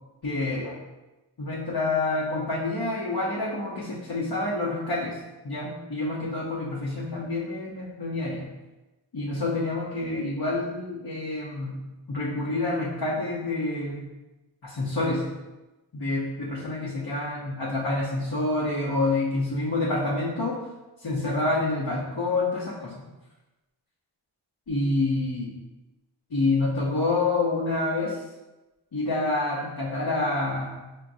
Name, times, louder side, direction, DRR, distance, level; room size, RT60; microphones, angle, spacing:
voice 1, 0.2-0.7 1.4-5.2 5.4-8.5 9.1-14.0 14.6-15.3 15.9-20.6 21.0-23.0 24.7-25.6 26.3-28.2 28.9-30.8, left 2 dB, 55° left, -6 dB, 0.8 m, -27 dB
6.0 x 2.2 x 2.6 m, 1.1 s
wide cardioid pair, 50°, 48 cm